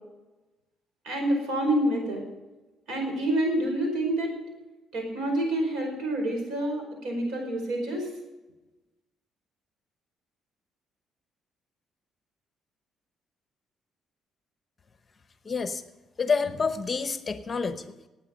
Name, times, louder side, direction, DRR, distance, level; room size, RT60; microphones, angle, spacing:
voice 1, 1.0-2.2 2.9-4.3 4.9-8.1, right 1 dB, 90° right, 2 dB, 5.1 m, -27 dB
voice 2, 15.4-15.8 16.2-17.9, left 5 dB, 25° left, 10 dB, 0.9 m, -28 dB
17.5 x 8.8 x 5.2 m, 1.1 s
cardioid pair, 130°, 0 cm